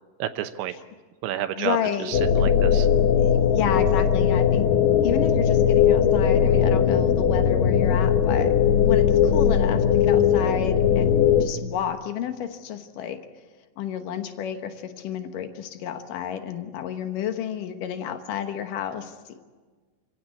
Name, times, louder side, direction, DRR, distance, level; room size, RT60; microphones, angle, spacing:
voice 1, 0.2-0.7 1.2-2.9, right 11 dB, 75° right, 8 dB, 2.9 m, -30 dB
voice 2, 1.6-2.2 3.1-4.7 5.0-8.6 8.8-13.2 13.8-19.3, left 9 dB, 85° left, 7 dB, 1.9 m, -31 dB
sound 1, 2.1-11.5, left 8 dB, 70° left, 2.1 m, -19 dB
28.5 x 17.0 x 8.5 m, 1.4 s
omnidirectional pair, 5.7 m